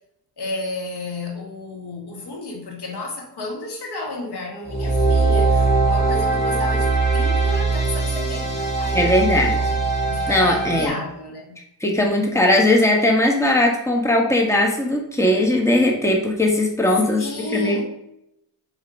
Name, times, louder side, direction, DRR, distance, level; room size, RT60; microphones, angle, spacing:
voice 1, 0.4-9.7 10.0-11.6 17.2-17.8, left 2 dB, 65° left, 0 dB, 2.1 m, -32 dB
sound 1, 4.7-10.9, right 3 dB, 25° left, 2.4 m, -20 dB
voice 2, 8.9-9.6 10.3-10.9 11.8-17.2 17.5-17.8, left 1 dB, 5° left, 0 dB, 1.5 m, -19 dB
5.2 x 4.8 x 5.3 m, 0.81 s
cardioid pair, 75°, 42 cm